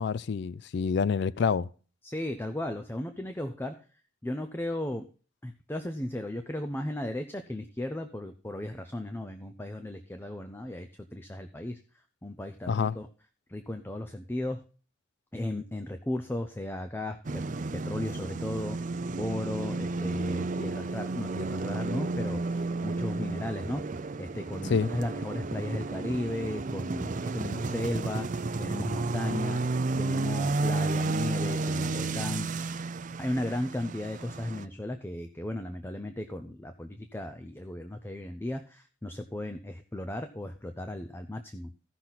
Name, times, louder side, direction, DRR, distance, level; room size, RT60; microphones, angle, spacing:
voice 1, 0.0-1.7 12.7-13.0 24.7-24.9, left 5 dB, 60° left, 0.4 m, -27 dB
voice 2, 2.0-3.9 4.2-5.1 5.4-11.8 12.2-13.1 13.5-14.6 15.3-17.5 17.7-29.6 30.0-32.5 33.2-41.7, left 1 dB, 10° left, 0.6 m, -35 dB
sound 1, 17.2-34.6, right 3 dB, 40° right, 0.5 m, -32 dB
15.0 x 5.9 x 4.0 m
head